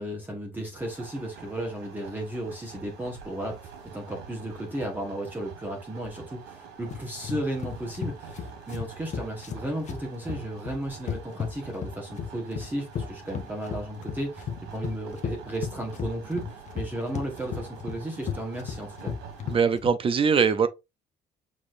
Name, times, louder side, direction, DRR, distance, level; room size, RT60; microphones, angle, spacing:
voice 1, 0.0-19.1, right 1 dB, 10° right, 1.3 m, -34 dB
sound 1, 0.7-19.6, right 7 dB, 90° right, 1.4 m, -46 dB
sound 2, 6.9-19.9, left 7 dB, 45° left, 0.9 m, -35 dB
voice 2, 19.5-20.7, right 6 dB, 30° right, 0.6 m, -22 dB
6.2 x 3.1 x 2.5 m
cardioid pair, 110°, 17 cm